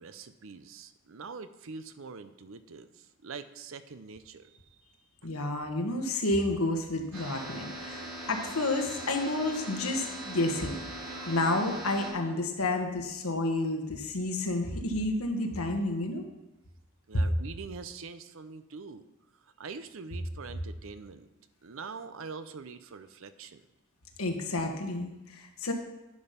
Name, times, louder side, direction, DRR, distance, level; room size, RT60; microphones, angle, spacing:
voice 1, 0.0-4.8 17.1-19.0 19.4-21.3 21.6-23.6, right 5 dB, 65° right, 12 dB, 0.6 m, -44 dB
voice 2, 5.2-10.8 11.3-16.2 17.1-17.2 24.2-25.7, left 2 dB, 80° left, 3 dB, 1.4 m, -30 dB
sound 1, 7.1-12.1, right 1 dB, 80° right, 3.9 m, -40 dB
10.5 x 5.4 x 5.8 m, 0.97 s
head